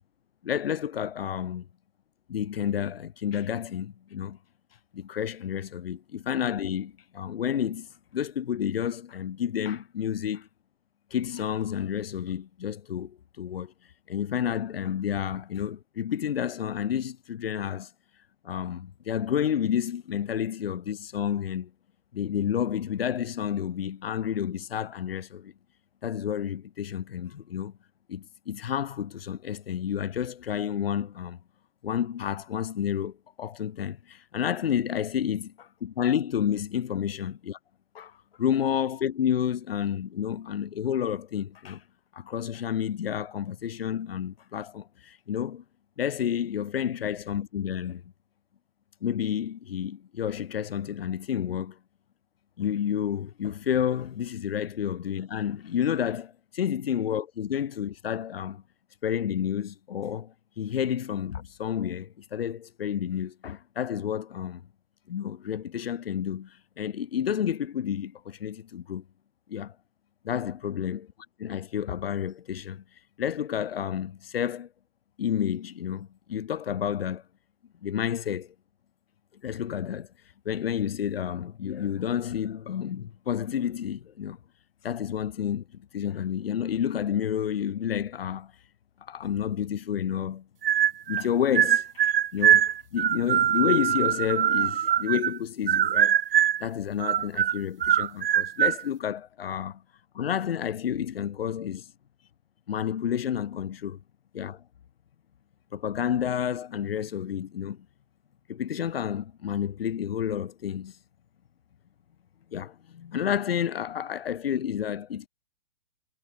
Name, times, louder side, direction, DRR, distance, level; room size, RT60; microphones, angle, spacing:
voice 1, 0.4-1.6 2.3-4.4 4.9-10.5 11.1-13.7 14.1-17.9 18.4-21.7 22.1-25.5 26.0-27.7 28.1-31.4 31.8-35.5 35.8-37.6 37.9-41.8 42.1-45.6 46.0-48.0 49.0-51.8 52.6-58.6 59.0-64.6 65.1-69.0 69.5-69.7 70.2-71.0 71.4-74.7 75.2-77.2 77.8-78.5 79.4-80.1 80.4-84.4 84.8-88.5 89.0-90.4 91.1-96.2 96.6-99.8 100.1-101.9 102.7-104.0 104.3-104.6 105.7-107.8 108.5-111.0 112.5-115.3, left 9 dB, 75° left, 1.4 m, -30 dB
sound 1, 90.6-91.2 91.5-95.4 95.7-96.6 97.0-98.8, right 10 dB, 65° right, 1.6 m, -23 dB
hypercardioid pair, 150°, 30 cm